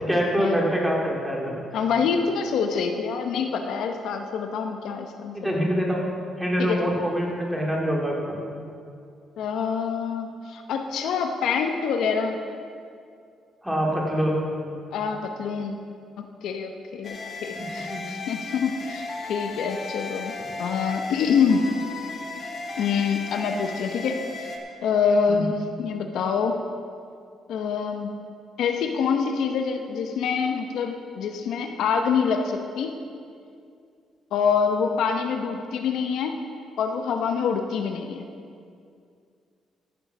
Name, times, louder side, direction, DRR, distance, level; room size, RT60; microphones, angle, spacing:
voice 1, 0.1-1.6 5.3-6.0 6.4-8.3 13.6-14.4 17.9-18.0 25.3-25.4, equal, 5° right, -2 dB, 2.9 m, -24 dB
voice 2, 1.7-5.4 6.6-6.9 9.4-12.4 14.9-15.8 16.2-20.3 20.6-21.7 22.8-24.5 24.8-26.6 27.5-28.1 28.6-32.9 34.3-36.4 36.8-38.2, left 6 dB, 80° left, 5 dB, 0.9 m, -26 dB
sound 1, 17.0-24.6, left 3 dB, 50° left, 1.8 m, -35 dB
14.0 x 7.0 x 6.2 m, 2.3 s
cardioid pair, 90°, 0 cm